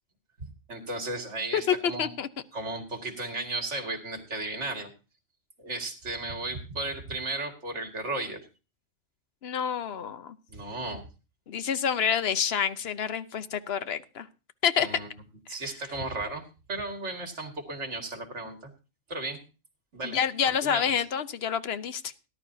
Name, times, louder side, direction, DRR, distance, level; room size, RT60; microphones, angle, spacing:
voice 1, 0.4-2.1 2.5-4.9 5.6-8.4 10.5-11.1 14.8-15.1 15.5-18.6 19.1-19.4 19.9-20.2 20.4-20.9, right 2 dB, 65° right, 4 dB, 2.6 m, -35 dB
voice 2, 1.5-2.3 9.4-10.4 11.5-14.3 14.6-14.9 20.0-22.1, left 8 dB, 55° left, 13 dB, 1.0 m, -28 dB
18.5 x 11.5 x 2.8 m, 0.32 s
omnidirectional pair, 1.3 m